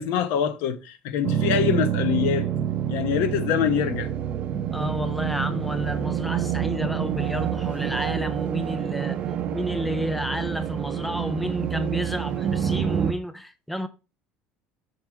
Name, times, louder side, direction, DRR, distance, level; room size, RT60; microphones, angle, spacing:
voice 1, 0.0-2.5 2.9-4.1, left 9 dB, 65° left, 0.9 m, -24 dB
sound 1, 1.2-13.1, right 9 dB, 35° right, 0.7 m, -27 dB
voice 2, 4.7-9.2 9.5-13.9, equal, ahead, 0.4 m, -31 dB
6.5 x 4.6 x 4.8 m
cardioid pair, 165°, 3 cm